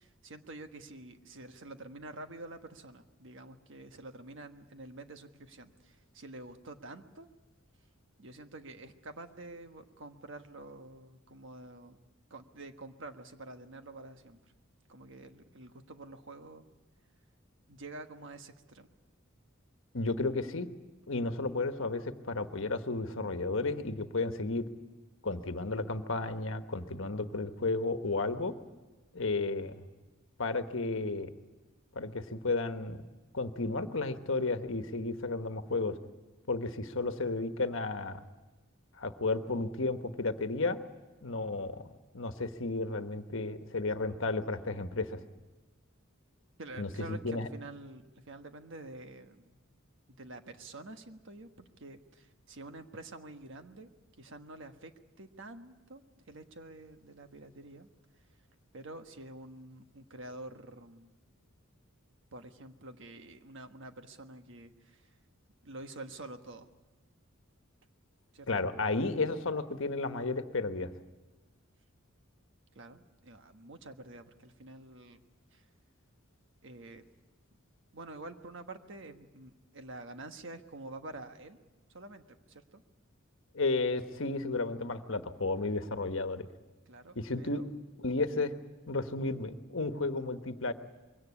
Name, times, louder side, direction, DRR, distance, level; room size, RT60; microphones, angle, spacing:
voice 1, 0.0-7.3 8.2-12.0 12.3-14.5 14.9-16.6 17.7-18.9 46.6-49.6 50.2-53.9 54.2-54.9 55.2-57.9 58.7-61.1 62.3-65.1 65.6-66.7 68.3-68.7 72.7-75.2 75.5-75.7 76.6-77.0 77.9-81.6 81.9-82.8 86.9-87.7, right 2 dB, 65° right, 7 dB, 1.4 m, -48 dB
voice 2, 19.9-20.7 21.1-24.7 25.2-28.5 29.1-29.9 30.4-31.3 31.9-33.0 33.3-36.0 36.5-38.2 39.0-40.8 41.2-45.2 46.8-47.5 68.5-70.9 83.5-86.5 87.1-87.6 88.0-88.5 88.9-90.7, left 3 dB, 65° left, 8 dB, 1.3 m, -33 dB
22.5 x 17.5 x 9.7 m, 1.2 s
head